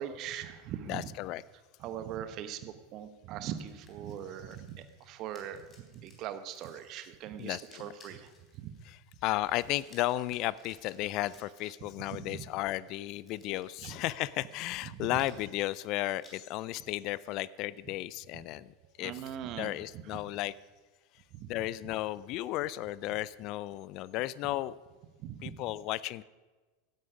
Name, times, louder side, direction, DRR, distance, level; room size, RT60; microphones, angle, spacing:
voice 1, 0.0-1.1 1.8-8.7 12.1-12.5 13.5-14.0 14.8-15.2 18.8-20.2 21.3-21.5 25.2-25.5, right 10 dB, 50° right, 11 dB, 1.1 m, -41 dB
voice 2, 0.8-1.4 7.4-7.9 8.8-9.0 9.2-18.7 19.0-19.2 19.6-20.5 21.5-24.8 25.4-26.2, left 16 dB, 50° left, 20 dB, 0.4 m, -34 dB
sound 1, 3.5-11.6 12.7-16.4, left 3 dB, 30° left, 3.7 m, -61 dB
16.0 x 9.6 x 5.1 m, 1.3 s
hypercardioid pair, 85°, 0 cm